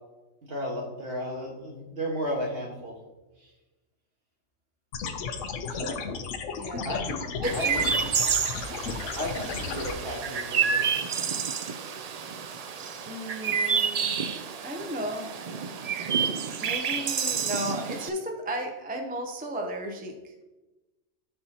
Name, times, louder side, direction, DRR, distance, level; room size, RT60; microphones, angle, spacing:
voice 1, 0.4-2.9 5.7-6.0 6.8-7.2 7.5-7.6 9.2-10.8, equal, 55° right, -1 dB, 1.7 m, -33 dB
sound 1, 4.9-9.9, left 5 dB, 80° left, 1.0 m, -34 dB
voice 2, 6.5-6.9 7.4-7.9 13.1-14.3 14.6-15.3 16.6-20.4, equal, 10° right, 3 dB, 0.4 m, -34 dB
Chirp tweet, 7.4-18.1, right 6 dB, 90° right, 0.3 m, -29 dB
12.0 x 4.4 x 2.8 m, 1.1 s
omnidirectional pair, 1.3 m